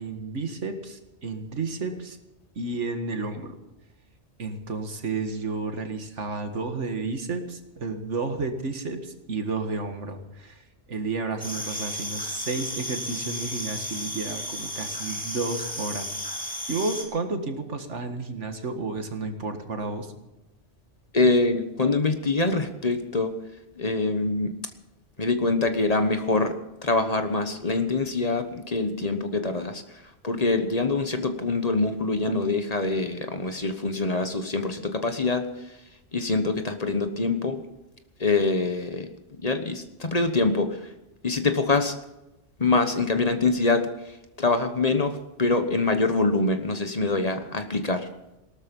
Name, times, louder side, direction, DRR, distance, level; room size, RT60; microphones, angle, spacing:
voice 1, 0.0-2.2 2.6-3.6 4.4-10.6 10.9-16.1 16.7-20.1, right 3 dB, 85° right, 6 dB, 2.0 m, -31 dB
sound 1, 11.4-17.0, equal, 5° left, 3.1 m, -33 dB
voice 2, 21.1-23.4 23.8-24.5 25.2-26.6 26.8-29.8 30.2-35.5 36.1-37.6 38.2-39.1 39.4-40.8 41.2-41.9 42.6-43.9 44.4-48.1, left 3 dB, 35° left, 7 dB, 1.2 m, -24 dB
18.0 x 13.0 x 5.4 m, 0.94 s
omnidirectional pair, 1.2 m